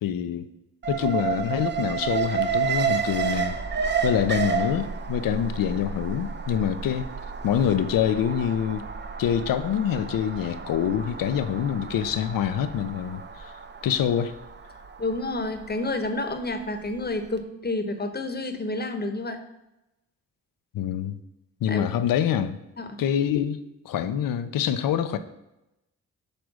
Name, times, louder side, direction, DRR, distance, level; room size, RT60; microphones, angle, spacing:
voice 1, 0.0-0.5 0.9-3.6 4.0-7.1 7.4-8.9 9.2-13.5 13.8-14.3 20.7-21.2 21.6-22.6 23.0-25.2, left 9 dB, 70° left, 11 dB, 0.6 m, -25 dB
Alarm, 0.8-16.9 17.3-17.4, right 6 dB, 30° right, 0.7 m, -31 dB
voice 2, 15.0-19.4 21.7-21.9 22.8-23.0, left 2 dB, 30° left, 7 dB, 1.1 m, -29 dB
6.6 x 3.4 x 6.1 m, 0.91 s
supercardioid pair, 50°, 35 cm